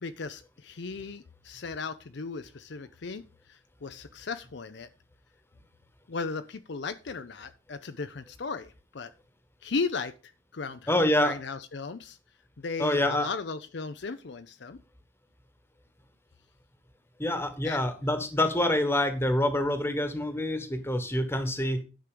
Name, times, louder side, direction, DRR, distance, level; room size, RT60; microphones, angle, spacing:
voice 1, 0.0-3.2 3.5-4.9 6.1-9.1 9.6-12.2 12.6-14.8 17.6-17.8, left 4 dB, 60° left, 10 dB, 0.6 m, -36 dB
voice 2, 10.9-11.4 12.8-13.3 17.2-21.8, left 1 dB, 10° left, 9 dB, 1.3 m, -26 dB
10.5 x 6.1 x 5.1 m, 0.33 s
head